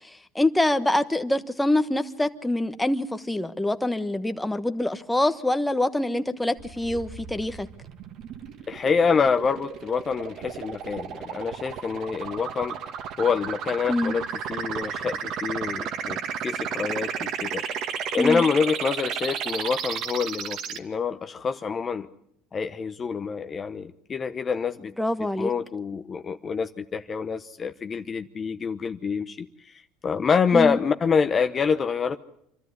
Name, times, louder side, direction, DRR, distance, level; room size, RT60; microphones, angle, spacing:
voice 1, 0.0-7.7 13.9-14.1 18.2-18.4 25.0-25.5 30.5-30.8, left 1 dB, 5° left, 8 dB, 1.3 m, -25 dB
sound 1, 6.6-20.8, right 7 dB, 55° right, 1.9 m, -33 dB
voice 2, 8.7-12.8 13.2-14.2 14.5-17.6 18.1-22.1 22.5-24.9 25.4-32.2, left 5 dB, 30° left, 8 dB, 0.9 m, -26 dB
26.0 x 13.5 x 9.6 m, 0.75 s
supercardioid pair, 105°, 0 cm